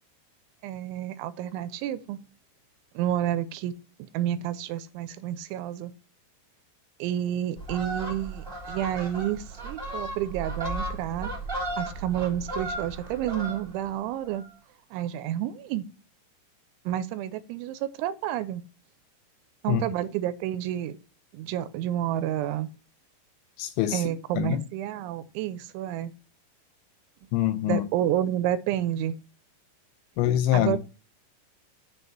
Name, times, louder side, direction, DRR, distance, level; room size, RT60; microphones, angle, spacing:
voice 1, 0.6-2.2 3.0-3.7 4.0-5.9 7.0-11.3 11.8-14.4 14.9-15.9 16.9-18.6 19.6-21.0 21.3-22.7 23.9-26.1 27.6-29.2 30.5-30.8, right 11 dB, 80° right, 2.9 m, -30 dB
Fowl, 7.6-13.9 14.2-14.5, right 2 dB, ahead, 1.4 m, -35 dB
voice 2, 23.6-24.1 24.4-24.6 27.3-27.9 30.2-30.8, left 12 dB, 85° left, 2.7 m, -24 dB
6.7 x 4.5 x 6.5 m
omnidirectional pair, 5.5 m